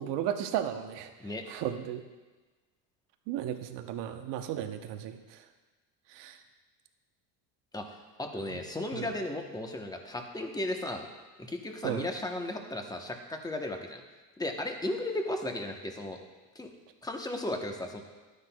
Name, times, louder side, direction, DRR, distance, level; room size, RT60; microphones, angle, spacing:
voice 1, 0.0-1.1 1.5-2.0 3.3-5.2 6.1-6.4 8.5-8.6 8.9-9.1 11.8-12.1, right 10 dB, 65° right, 7 dB, 0.9 m, -34 dB
voice 2, 7.7-11.1 11.4-14.0 14.4-16.2 16.5-16.7 17.0-18.0, left 1 dB, 10° left, 4 dB, 0.9 m, -35 dB
12.0 x 9.9 x 2.3 m, 1.2 s
supercardioid pair, 100°, 46 cm